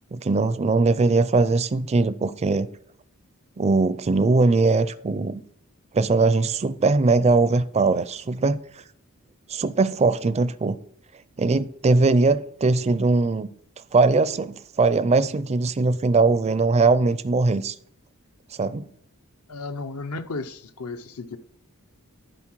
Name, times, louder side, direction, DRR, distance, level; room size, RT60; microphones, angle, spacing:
voice 1, 0.1-2.7 3.6-5.4 5.9-8.6 9.5-10.8 11.4-13.5 13.9-17.7 18.6-18.9, right 3 dB, 30° right, 0.4 m, -20 dB
voice 2, 19.5-21.4, left 3 dB, 75° left, 0.8 m, -34 dB
11.0 x 4.1 x 4.6 m
head